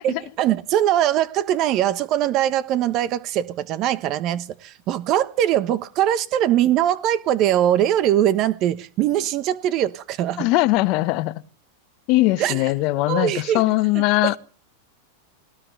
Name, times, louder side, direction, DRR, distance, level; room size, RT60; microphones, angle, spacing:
voice 1, 0.0-10.5 12.4-12.6 13.1-13.6 13.9-14.4, right 11 dB, 40° right, 1.3 m, -22 dB
voice 2, 10.4-11.3 12.1-14.4, left 19 dB, 50° left, 1.4 m, -20 dB
19.5 x 19.0 x 3.4 m
hypercardioid pair, 125°, 0 cm